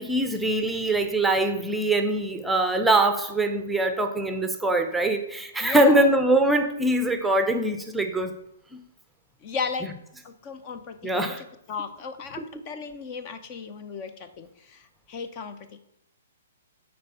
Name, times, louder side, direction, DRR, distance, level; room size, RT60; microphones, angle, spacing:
voice 1, 0.0-8.3 11.0-11.4, right 1 dB, 5° right, 7 dB, 0.7 m, -23 dB
voice 2, 5.6-6.1 9.4-9.9 10.2-15.8, left 5 dB, 35° left, 10 dB, 0.7 m, -35 dB
8.7 x 4.3 x 5.5 m, 0.82 s
hypercardioid pair, 140°, 0 cm